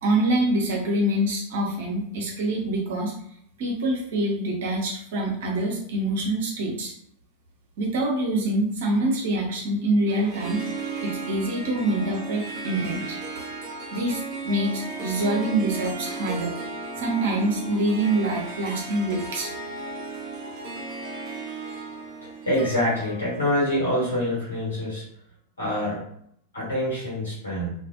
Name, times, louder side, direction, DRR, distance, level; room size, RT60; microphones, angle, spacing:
voice 1, 0.0-3.1 3.6-6.9 7.8-10.6 11.0-13.2 13.9-16.5 17.0-19.5, right 1 dB, 55° right, -1 dB, 0.8 m, -25 dB
Harp, 10.1-24.6, right 3 dB, 40° right, 0.5 m, -35 dB
voice 2, 22.4-25.0 25.6-26.0 26.5-27.7, left 1 dB, 75° left, -6 dB, 1.4 m, -25 dB
2.5 x 2.5 x 2.5 m, 0.68 s
figure-of-eight pair, 90°, 0 cm